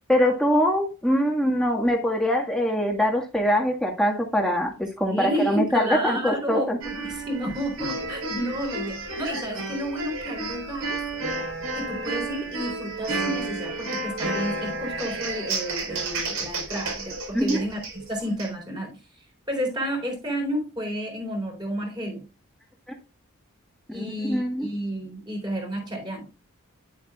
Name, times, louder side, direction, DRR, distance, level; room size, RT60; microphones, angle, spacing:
voice 1, 0.1-6.8 17.3-17.6 23.9-24.7, equal, 5° left, 1.7 m, -23 dB
voice 2, 5.1-11.0 11.7-19.0 19.5-22.3 23.9-26.3, equal, 20° right, 4.1 m, -31 dB
sound 1, 6.8-18.5, right 3 dB, 80° right, 4.6 m, -31 dB
10.5 x 8.4 x 2.4 m
head